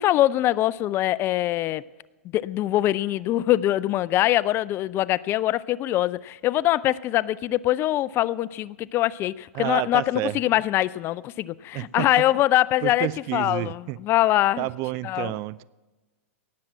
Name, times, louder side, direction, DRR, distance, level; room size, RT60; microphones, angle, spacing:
voice 1, 0.0-1.8 2.3-14.7 15.0-15.3, left 14 dB, 30° left, 0.3 m, -23 dB
voice 2, 9.5-10.4 11.7-12.3 12.8-14.0 14.6-15.6, right 18 dB, 40° right, 0.4 m, -30 dB
18.0 x 7.2 x 7.5 m
hypercardioid pair, 110°, 8 cm